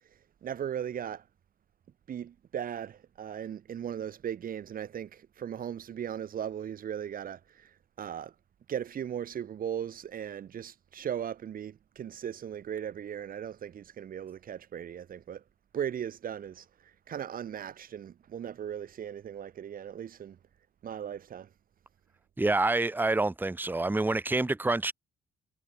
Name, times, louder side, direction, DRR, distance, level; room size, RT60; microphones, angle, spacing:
voice 1, 0.4-1.2 2.1-7.7 8.0-8.3 8.7-15.4 15.7-16.6 17.1-20.4 20.8-21.5, right 9 dB, 45° right, 0.6 m, -37 dB
voice 2, 22.4-24.9, right 2 dB, 10° right, 0.9 m, -27 dB
cardioid pair, 90°, 20 cm